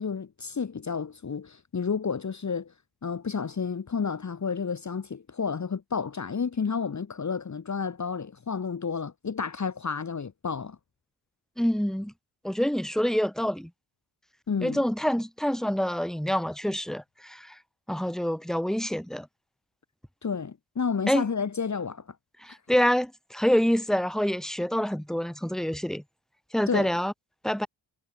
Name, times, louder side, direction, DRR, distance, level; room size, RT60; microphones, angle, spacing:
voice 1, 0.0-2.7 3.0-10.8 14.5-14.8 20.2-22.0 26.7-26.9, left 5 dB, 35° left, 2.0 m, -31 dB
voice 2, 11.6-12.1 12.4-13.7 14.6-17.6 17.9-19.3 21.1-21.2 22.4-26.0 26.5-27.1 27.4-27.7, equal, ahead, 3.0 m, -26 dB
cardioid pair, 80°, 48 cm